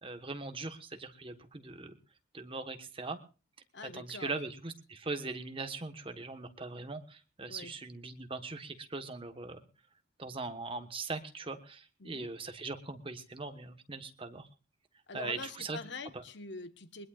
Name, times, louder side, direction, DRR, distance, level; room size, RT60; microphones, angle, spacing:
voice 1, 0.0-2.0 2.3-3.2 3.9-9.6 10.2-14.5 15.1-15.8 16.1-16.2, right 3 dB, 25° right, 7 dB, 1.3 m, -40 dB
voice 2, 3.7-4.3 7.5-7.7 12.0-12.3 15.1-17.1, left 3 dB, 60° left, 10 dB, 1.2 m, -44 dB
20.5 x 20.5 x 2.4 m, 0.33 s
head